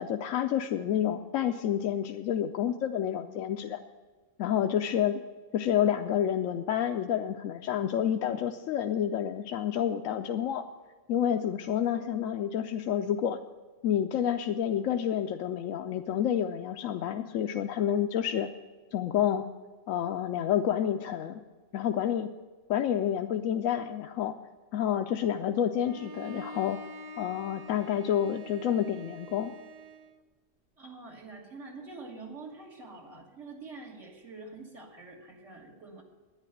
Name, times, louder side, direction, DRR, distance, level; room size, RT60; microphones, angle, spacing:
voice 1, 0.0-3.8 4.4-5.2 5.5-10.6 11.1-13.4 13.8-18.5 18.9-19.5 19.9-21.4 21.7-22.3 22.7-24.4 24.7-26.8 27.2-29.5, left 9 dB, 80° left, 5 dB, 1.0 m, -29 dB
Bowed string instrument, 25.8-30.2, right 2 dB, 45° right, 0.5 m, -46 dB
voice 2, 30.8-36.0, right 3 dB, 70° right, -2 dB, 2.0 m, -46 dB
10.5 x 9.6 x 7.9 m, 1.4 s
omnidirectional pair, 1.3 m